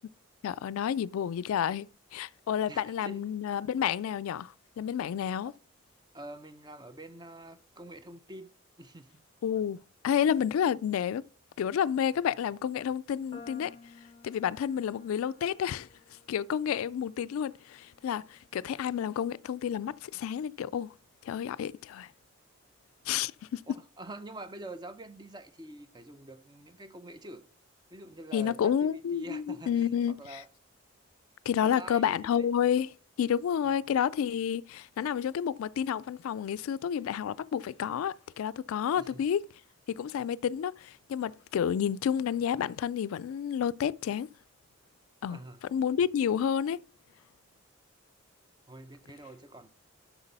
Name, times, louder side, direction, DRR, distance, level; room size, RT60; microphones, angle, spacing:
voice 1, 0.4-5.5 9.4-9.8 10.0-11.2 11.6-13.8 14.2-15.9 16.3-20.9 21.2-22.1 23.1-23.6 28.3-30.4 31.5-32.9 33.2-39.5 39.9-44.3 45.2-46.8, left 8 dB, 80° left, 0.3 m, -30 dB
voice 2, 2.7-3.2 6.1-8.5 8.8-9.2 10.7-10.8 23.7-27.5 27.9-29.9 30.2-30.5 31.6-32.5 33.7-33.8 39.0-39.2 45.3-45.6 48.7-49.7, right 1 dB, 20° right, 0.5 m, -46 dB
sound 1, 13.3-19.7, left 3 dB, 25° left, 0.7 m, -56 dB
8.0 x 6.0 x 5.2 m
head